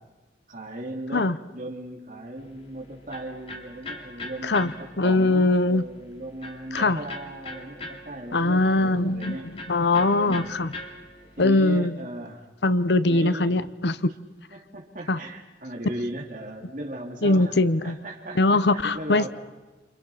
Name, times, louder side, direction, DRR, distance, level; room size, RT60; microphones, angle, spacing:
voice 1, 0.5-9.5 9.9-10.6 11.4-12.5 13.1-13.6 14.5-17.5 17.8-19.3, right 1 dB, 45° right, 1 dB, 3.6 m, -37 dB
Electric guitar, 2.4-11.5, left 2 dB, 30° left, 2.7 m, -42 dB
voice 2, 4.4-5.8 6.7-7.0 8.3-9.4 9.7-10.7 11.4-12.0 12.6-14.1 15.1-15.2 17.2-18.0 18.3-19.3, left 2 dB, 75° left, 14 dB, 0.9 m, -21 dB
29.0 x 27.5 x 5.8 m, 1.2 s
head